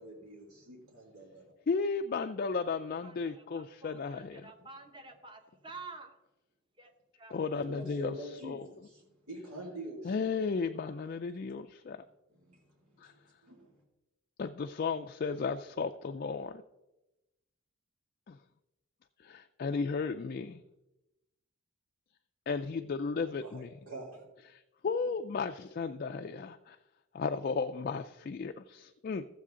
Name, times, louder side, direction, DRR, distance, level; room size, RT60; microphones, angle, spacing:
voice 1, 0.0-1.4 4.4-4.5 7.5-10.3 12.3-13.8 23.4-24.2, right 1 dB, 85° right, -1 dB, 2.3 m, -46 dB
voice 2, 1.7-4.5 7.3-8.1 8.4-8.7 10.0-12.0 13.0-13.1 14.4-16.6 18.3-18.4 19.2-20.6 22.5-23.7 24.5-26.8 27.1-29.3, left 5 dB, 40° left, 6 dB, 0.3 m, -34 dB
voice 3, 3.0-6.1 6.8-6.9 7.2-7.4 10.3-10.5, right 3 dB, 20° right, 5 dB, 0.9 m, -50 dB
14.0 x 7.5 x 3.7 m, 0.99 s
head